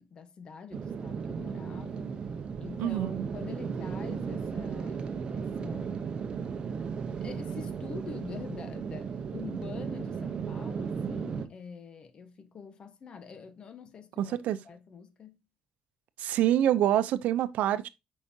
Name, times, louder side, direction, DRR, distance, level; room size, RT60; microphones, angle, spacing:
voice 1, 0.0-2.1 2.6-5.0 5.3-6.2 7.2-15.4, left 5 dB, 40° left, 1.2 m, -45 dB
sound 1, 0.7-11.5, right 6 dB, 40° right, 0.9 m, -35 dB
voice 2, 2.8-3.3 14.2-14.6 16.2-17.9, right 12 dB, 80° right, 0.6 m, -26 dB
8.4 x 5.5 x 2.8 m
cardioid pair, 145°, 3 cm